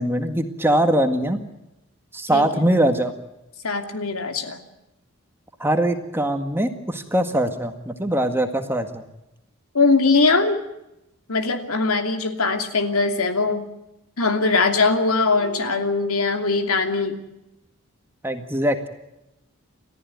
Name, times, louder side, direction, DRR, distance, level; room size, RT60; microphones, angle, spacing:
voice 1, 0.0-1.4 2.1-3.1 5.6-9.0 18.2-18.9, right 1 dB, 10° right, 6 dB, 1.8 m, -22 dB
voice 2, 2.3-2.7 3.6-4.6 9.7-10.6 11.3-13.7 14.2-17.2, left 3 dB, 85° left, 6 dB, 2.8 m, -21 dB
30.0 x 14.0 x 9.4 m, 0.90 s
head